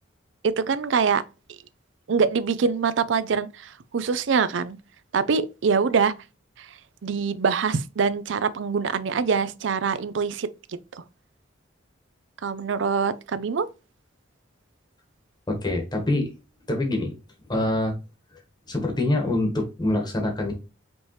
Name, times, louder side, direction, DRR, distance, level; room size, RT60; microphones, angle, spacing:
voice 1, 0.4-1.2 2.1-4.8 5.1-6.1 6.6-6.7 7.0-10.5 12.4-13.7, right 5 dB, 70° right, 0.5 m, -24 dB
voice 2, 15.5-16.3 16.7-17.1 17.5-17.9 18.7-20.5, left 1 dB, 25° left, 1.2 m, -25 dB
5.1 x 3.2 x 3.1 m
head